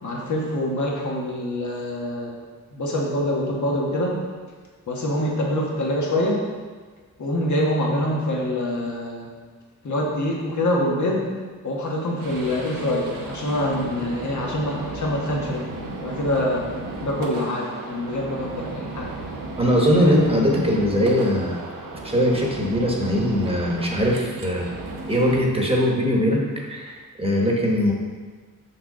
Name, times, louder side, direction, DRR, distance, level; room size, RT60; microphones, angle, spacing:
voice 1, 0.0-2.3 2.7-4.1 4.9-6.4 7.2-9.3 9.8-11.3 11.6-15.7 16.0-16.7 17.0-19.1 20.0-20.3, left 1 dB, 65° left, -2 dB, 1.5 m, -25 dB
sound 1, 12.2-25.4, right 2 dB, 85° right, 0.9 m, -35 dB
voice 2, 19.6-21.6 22.0-24.7 25.1-26.4 26.7-27.9, equal, 15° right, -2 dB, 1.2 m, -21 dB
6.3 x 6.3 x 3.8 m, 1.5 s
wide cardioid pair, 110°, 32 cm